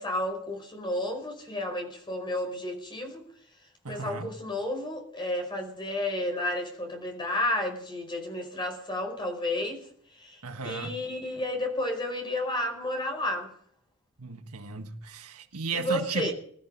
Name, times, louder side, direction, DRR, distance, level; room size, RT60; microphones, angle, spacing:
voice 1, 0.0-3.2 3.9-9.9 10.1-13.5 15.7-16.3, left 1 dB, 20° left, 4.9 m, -32 dB
voice 2, 3.8-4.3 10.4-11.0 14.2-16.3, right 4 dB, 80° right, 1.6 m, -35 dB
24.0 x 13.0 x 4.0 m
head